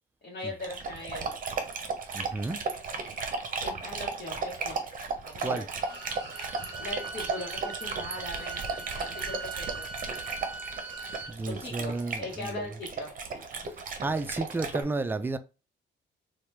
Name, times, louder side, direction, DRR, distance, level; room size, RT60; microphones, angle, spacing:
voice 1, 0.2-1.3 3.6-4.8 5.2-5.7 6.5-8.6 8.9-9.8 11.4-13.1, left 2 dB, 50° left, 1.0 m, -40 dB
Dog, 0.6-14.8, right 4 dB, 45° right, 0.7 m, -35 dB
voice 2, 2.1-2.6 5.4-5.7 11.3-12.7 13.8-15.4, right 3 dB, 10° right, 0.3 m, -32 dB
Bowed string instrument, 5.6-11.3, right 4 dB, 25° right, 1.5 m, -40 dB
2.9 x 2.2 x 3.2 m
cardioid pair, 90°, 20 cm